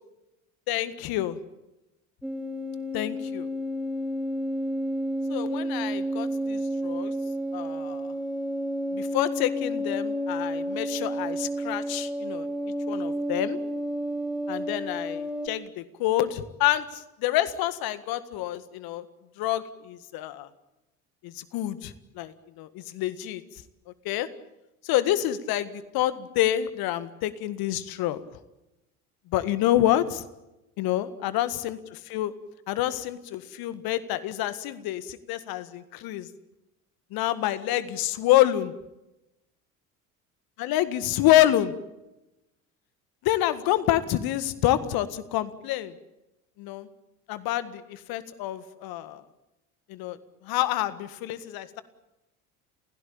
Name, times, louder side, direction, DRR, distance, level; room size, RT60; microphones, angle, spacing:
voice 1, 0.7-1.4 2.9-3.5 5.3-7.1 7.5-8.1 8.9-12.5 12.9-13.6 14.5-19.0 19.4-20.5 21.2-23.4 24.1-24.3 24.8-28.2 29.3-30.3 30.8-32.3 32.7-36.3 37.1-38.7 40.6-41.7 43.2-45.9 46.6-46.9 47.3-49.2 49.9-50.2 50.4-51.8, left 13 dB, 55° left, 14 dB, 1.9 m, -27 dB
sound 1, 2.2-15.5, equal, ahead, 1.9 m, -31 dB
30.0 x 16.5 x 8.7 m, 0.94 s
hypercardioid pair, 65°, 43 cm